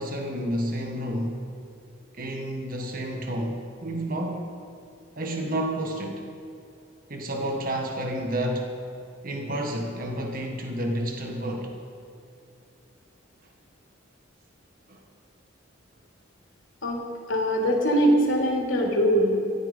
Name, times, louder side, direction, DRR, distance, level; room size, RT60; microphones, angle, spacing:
voice 1, 0.0-1.4 2.1-4.5 5.2-6.3 7.1-8.7 9.2-11.8 14.9-15.0, right 1 dB, 45° right, 2 dB, 1.5 m, -30 dB
voice 2, 17.3-19.4, equal, 85° left, -1 dB, 2.9 m, -22 dB
15.0 x 13.5 x 5.3 m, 2.6 s
head